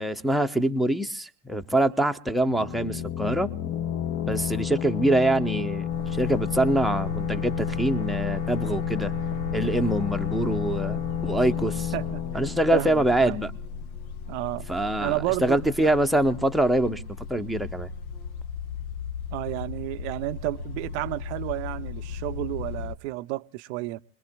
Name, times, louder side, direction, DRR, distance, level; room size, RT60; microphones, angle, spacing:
voice 1, 0.0-3.5 4.3-9.1 9.5-11.9 12.3-13.5 14.7-15.1 15.4-17.0 17.3-17.9, right 1 dB, ahead, 0.8 m, -24 dB
sound 1, 2.4-13.9, left 9 dB, 45° left, 1.3 m, -31 dB
sound 2, 5.9-22.9, left 4 dB, 65° left, 1.1 m, -36 dB
voice 2, 12.7-13.4 14.3-14.7 15.0-15.9 19.3-24.0, right 19 dB, 50° right, 0.7 m, -31 dB
29.5 x 21.5 x 2.2 m
figure-of-eight pair, 70°, 46 cm